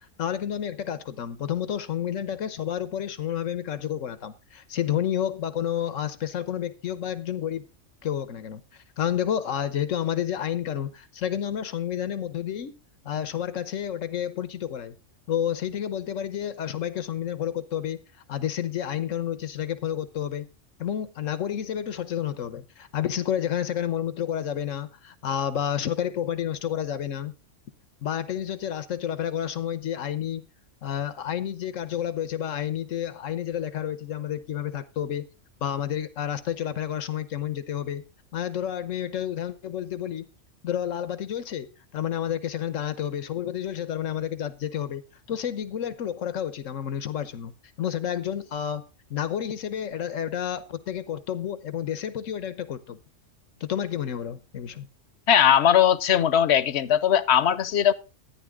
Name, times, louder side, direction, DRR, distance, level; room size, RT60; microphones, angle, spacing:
voice 1, 0.2-7.6 8.0-12.7 13.0-14.9 15.3-18.0 18.3-20.4 20.8-27.3 28.0-30.4 30.8-35.2 35.6-38.0 38.3-40.3 40.6-41.7 41.9-45.0 45.3-47.5 47.8-48.8 49.1-53.0 53.6-54.9, left 10 dB, 90° left, 1.3 m, -30 dB
voice 2, 55.3-57.9, left 9 dB, 65° left, 1.0 m, -19 dB
13.0 x 10.0 x 3.6 m
omnidirectional pair, 1.3 m